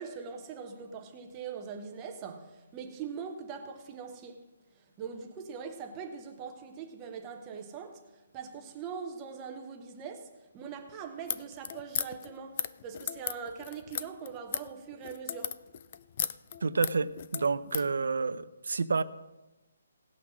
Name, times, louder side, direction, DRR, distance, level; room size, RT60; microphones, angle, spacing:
voice 1, 0.0-4.4 5.0-8.0 8.3-15.6, right 6 dB, 10° right, 0.7 m, -42 dB
sound 1, 11.2-17.9, left 9 dB, 25° left, 0.3 m, -36 dB
voice 2, 16.6-19.0, right 4 dB, 70° right, 0.6 m, -29 dB
17.5 x 5.9 x 6.1 m
hypercardioid pair, 180°, 0 cm